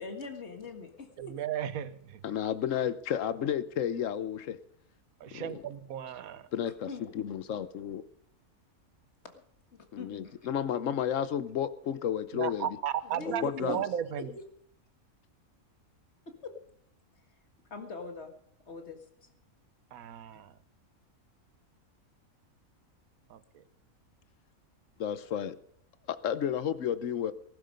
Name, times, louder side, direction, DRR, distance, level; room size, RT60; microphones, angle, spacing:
voice 1, 0.0-1.4 6.9-7.1 10.0-10.5 13.0-13.8 14.2-14.4 16.3-16.5 17.7-18.3 18.7-19.3, left 3 dB, 50° left, 5 dB, 2.1 m, -42 dB
voice 2, 1.2-2.2 5.2-6.4 12.3-14.3 19.9-20.5 23.3-23.4, right 10 dB, 85° right, 14 dB, 1.3 m, -35 dB
voice 3, 2.2-4.6 5.3-5.6 6.5-6.9 7.1-8.0 9.9-12.8 13.3-13.8 25.0-25.6 26.1-27.3, left 9 dB, 65° left, 15 dB, 1.1 m, -32 dB
19.0 x 12.0 x 5.3 m, 0.67 s
omnidirectional pair, 1.5 m